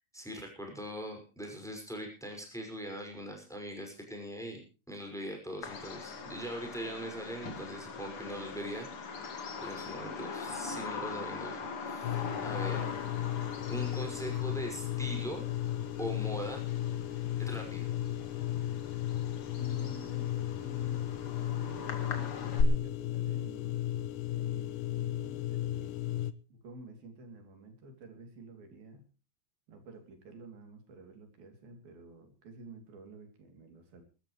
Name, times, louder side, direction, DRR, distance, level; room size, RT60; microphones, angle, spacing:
voice 1, 0.1-4.6 4.9-8.9 9.6-12.9 13.7-15.4 16.0-16.7 17.4-17.9, equal, ahead, 2 dB, 5.7 m, -41 dB
Bird vocalization bird call bird song, 5.6-22.6, left 4 dB, 45° left, 2.7 m, -41 dB
sound 1, 12.0-26.3, left 13 dB, 75° left, 2.3 m, -35 dB
voice 2, 12.2-12.6 19.3-23.8 24.3-26.1 26.5-29.1 29.7-34.0, right 2 dB, 90° right, 6 dB, 4.8 m, -51 dB
24.0 x 13.5 x 3.2 m, 0.33 s
omnidirectional pair, 4.1 m